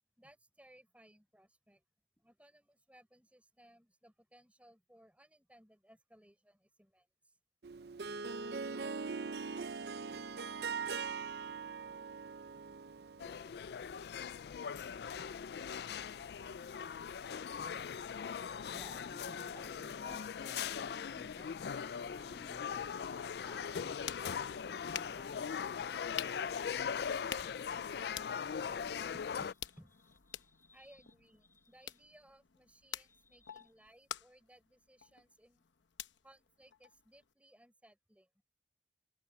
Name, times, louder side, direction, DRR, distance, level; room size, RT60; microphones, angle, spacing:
voice 1, 0.2-1.8 2.2-7.4 29.1-30.0 30.7-35.7 36.2-38.3, right 1 dB, 5° right, 4.9 m, -63 dB
Harp, 7.6-13.4, right 5 dB, 60° right, 0.6 m, -41 dB
sound 1, 13.2-29.5, left 7 dB, 60° left, 0.3 m, -40 dB
voice 2, 17.1-26.0 30.3-31.1 31.4-31.9 32.9-33.7, left 1 dB, 15° left, 6.0 m, -60 dB
sound 2, 23.6-37.3, left 10 dB, 80° left, 0.9 m, -49 dB
head